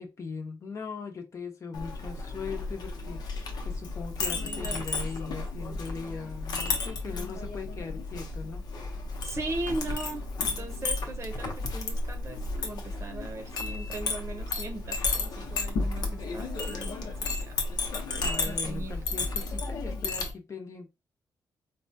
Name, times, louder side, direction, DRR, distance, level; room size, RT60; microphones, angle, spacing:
voice 1, 0.0-8.6 18.2-20.9, left 5 dB, 45° left, 0.8 m, -40 dB
Chink clink, 1.7-20.3, left 3 dB, 85° left, 0.8 m, -33 dB
voice 2, 4.2-5.1 9.2-17.6 18.4-19.0, right 2 dB, 45° right, 0.7 m, -39 dB
4.2 x 2.2 x 2.6 m
cardioid pair, 95°, 7 cm